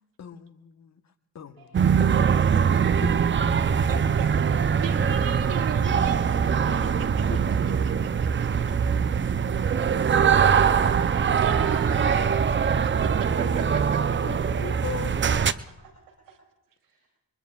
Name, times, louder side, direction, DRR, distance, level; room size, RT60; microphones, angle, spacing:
voice 1, 0.2-1.0 1.3-2.0 3.0-3.1 7.3-7.4 12.7-13.7 14.2-15.1, left 9 dB, 50° left, 8 dB, 1.2 m, -40 dB
hall ambience, 1.7-15.5, right 7 dB, 35° right, 0.6 m, -22 dB
voice 2, 3.6-6.2 6.6-7.3 8.0-8.5 10.0-10.1 11.4-12.3 13.0-14.0, right 8 dB, 70° right, 6 dB, 1.5 m, -37 dB
voice 3, 14.5-15.1 15.8-15.9 16.8-17.1, right 4 dB, 90° right, 0 dB, 3.2 m, -48 dB
23.5 x 21.0 x 2.4 m, 0.93 s
supercardioid pair, 60°, 34 cm